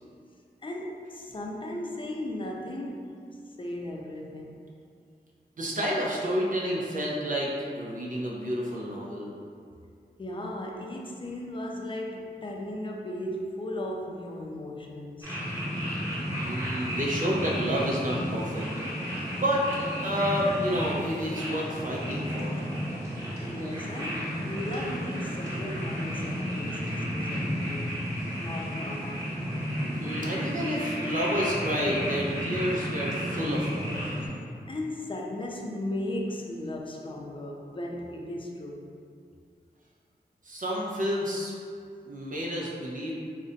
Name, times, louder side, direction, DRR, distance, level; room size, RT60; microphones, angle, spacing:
voice 1, 0.6-3.1 3.5-4.6 10.2-15.4 23.4-28.0 28.3-29.2 34.7-38.9, left 1 dB, 30° left, 0 dB, 0.4 m, -36 dB
voice 2, 5.6-7.5 7.7-9.3 16.4-18.6 19.3-19.6 20.0-22.6 29.8-34.0 40.4-41.5 42.0-43.1, equal, 55° right, -3 dB, 0.6 m, -30 dB
sound 1, 15.2-34.3, equal, 15° right, 1.1 m, -32 dB
2.5 x 2.1 x 3.8 m, 2.3 s
wide cardioid pair, 55°, 17 cm